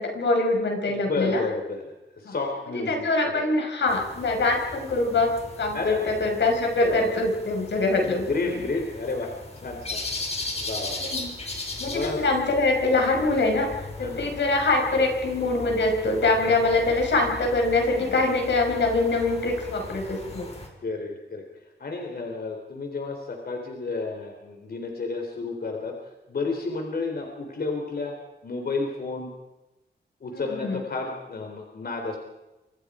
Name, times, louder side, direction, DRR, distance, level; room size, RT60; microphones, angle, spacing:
voice 1, 0.0-1.4 2.3-2.4 2.9-8.3 11.0-11.3 11.8-13.7 14.0-20.5 30.4-30.8, left 2 dB, 90° left, 3 dB, 5.8 m, -24 dB
voice 2, 0.9-1.8 2.1-3.4 5.7-6.1 6.8-7.1 8.0-9.3 9.6-10.0 10.5-11.2 11.8-12.2 14.0-14.3 16.8-17.0 20.3-20.4 20.8-21.4 21.8-26.0 26.3-28.2 28.4-29.3 30.2-32.2, left 3 dB, 60° left, 3 dB, 3.7 m, -31 dB
sound 1, 3.9-20.7, left 2 dB, 35° left, 4.8 m, -38 dB
29.0 x 26.0 x 5.0 m, 1.0 s
wide cardioid pair, 125°, 18 cm